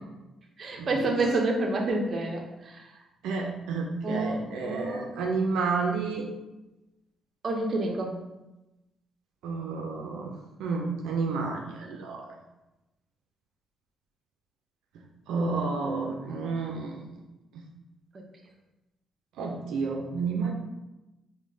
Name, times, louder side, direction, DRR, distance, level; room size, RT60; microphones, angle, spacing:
voice 1, 0.6-2.9 4.0-5.1 7.4-8.1 18.1-18.2, right 2 dB, 45° right, 1 dB, 0.6 m, -28 dB
voice 2, 3.2-6.3 9.4-12.4 15.3-17.0 17.5-17.6 19.4-20.5, right 4 dB, 85° right, 1 dB, 0.4 m, -30 dB
4.9 x 2.1 x 2.7 m, 1.0 s
cardioid pair, 90°, 0 cm